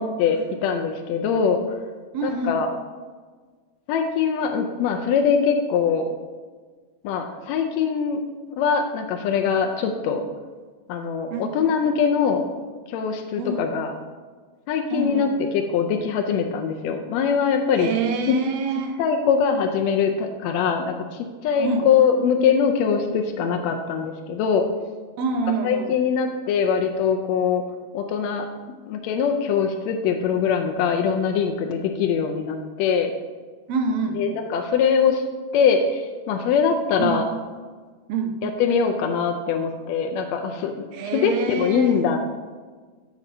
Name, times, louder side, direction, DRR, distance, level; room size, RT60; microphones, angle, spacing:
voice 1, 0.0-1.6 2.2-2.7 3.9-6.1 7.0-8.2 8.5-10.2 10.9-12.5 12.9-13.9 14.7-17.9 18.3-18.4 19.0-24.6 25.6-27.6 27.9-28.5 28.9-33.1 34.1-35.2 35.5-37.2 38.4-40.9 41.1-42.2, left 6 dB, 80° left, 4 dB, 1.7 m, -22 dB
voice 2, 2.1-2.6 11.3-11.6 13.4-13.7 14.9-15.3 17.8-19.0 21.6-21.9 25.2-25.9 33.7-34.2 37.0-37.2 38.1-38.4 40.9-42.0, right 4 dB, 75° right, 5 dB, 1.8 m, -26 dB
11.0 x 7.1 x 2.7 m, 1.4 s
omnidirectional pair, 3.4 m